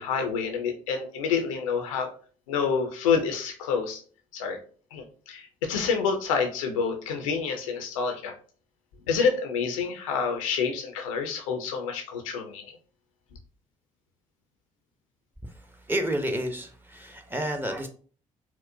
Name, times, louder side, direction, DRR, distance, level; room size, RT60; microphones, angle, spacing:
voice 1, 0.0-2.1 2.5-4.0 4.3-4.6 4.9-8.3 9.1-12.6, left 6 dB, 75° left, 0.5 m, -28 dB
voice 2, 15.9-17.9, right 1 dB, 10° right, 0.7 m, -30 dB
4.3 x 2.0 x 2.6 m
figure-of-eight pair, 45°, 17 cm